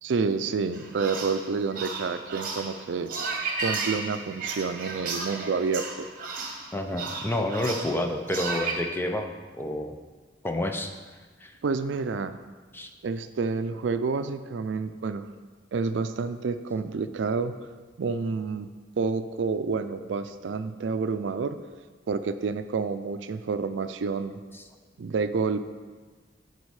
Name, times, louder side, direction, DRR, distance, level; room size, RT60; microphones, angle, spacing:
voice 1, 0.0-3.1 3.6-6.1 11.6-12.4 13.0-15.2 15.7-17.6 18.0-18.7 19.0-21.6 22.1-24.4 25.0-25.7, right 4 dB, 85° right, 11 dB, 0.4 m, -29 dB
sound 1, 0.7-8.7, right 4 dB, 50° right, 1.0 m, -34 dB
voice 2, 6.7-10.0 10.4-10.9 11.4-11.5 12.7-12.9 24.5-24.6, left 1 dB, 10° left, 5 dB, 0.5 m, -29 dB
9.5 x 4.1 x 4.8 m, 1.4 s
head